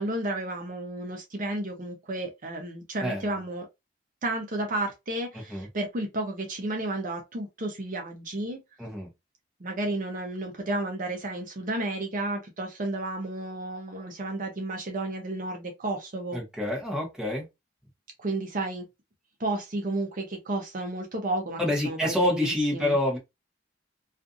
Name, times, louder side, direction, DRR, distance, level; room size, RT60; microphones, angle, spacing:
voice 1, 0.0-3.7 4.2-8.6 9.6-16.4 18.2-18.8 19.4-21.6 21.8-23.0, right 2 dB, 45° right, 0.6 m, -32 dB
voice 2, 8.8-9.1 16.3-17.5 21.6-23.2, left 1 dB, 5° right, 1.0 m, -27 dB
2.4 x 2.4 x 2.5 m
head